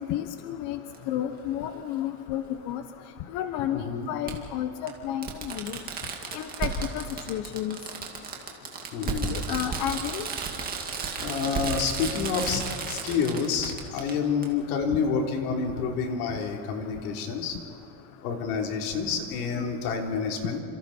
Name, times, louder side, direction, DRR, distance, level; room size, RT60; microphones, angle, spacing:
voice 1, 0.1-0.8 1.1-2.8 3.3-5.8 6.3-7.8 9.3-10.3 19.6-19.7, left 11 dB, 45° left, 8 dB, 1.0 m, -31 dB
Fireworks, 0.9-1.0 2.6-2.7 4.3-4.4 4.9-5.0 5.2-14.1 14.4-14.5, right 5 dB, 20° right, 2.2 m, -33 dB
voice 2, 3.7-4.1 8.9-9.3 11.2-17.6 18.2-20.6, left 5 dB, 80° left, 1 dB, 4.0 m, -28 dB
28.5 x 27.0 x 4.5 m, 2.7 s
cardioid pair, 175°, 43 cm